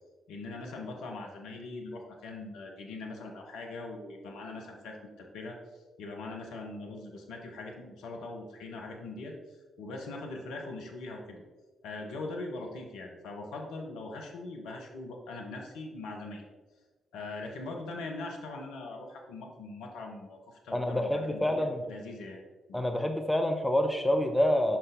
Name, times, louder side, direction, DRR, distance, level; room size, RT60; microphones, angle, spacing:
voice 1, 0.3-5.6 6.0-9.3 9.8-11.4 11.8-16.4 17.1-22.4 22.7-22.8, left 2 dB, 70° left, 1 dB, 0.9 m, -41 dB
voice 2, 20.7-21.8 22.7-24.8, left 1 dB, 5° left, 5 dB, 0.7 m, -27 dB
5.9 x 5.4 x 3.5 m, 1.3 s
hypercardioid pair, 40°, 0 cm